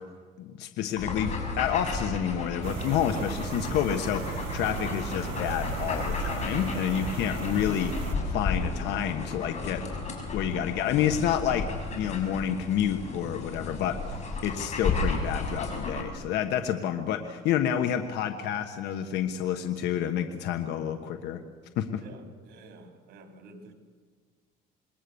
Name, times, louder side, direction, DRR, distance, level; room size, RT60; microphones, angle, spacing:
voice 1, 0.4-7.9 8.3-9.8 10.3-11.6 11.9-13.9 14.4-21.4 21.8-22.0, left 9 dB, 85° left, 7 dB, 1.5 m, -29 dB
sound 1, 1.0-16.0, left 3 dB, 45° left, 6.1 m, -33 dB
sound 2, 2.6-8.2, right 8 dB, 85° right, 2.1 m, -37 dB
voice 2, 22.0-23.7, right 3 dB, 70° right, 4 dB, 4.1 m, -50 dB
27.5 x 21.0 x 7.1 m, 1.5 s
cardioid pair, 110°, 17 cm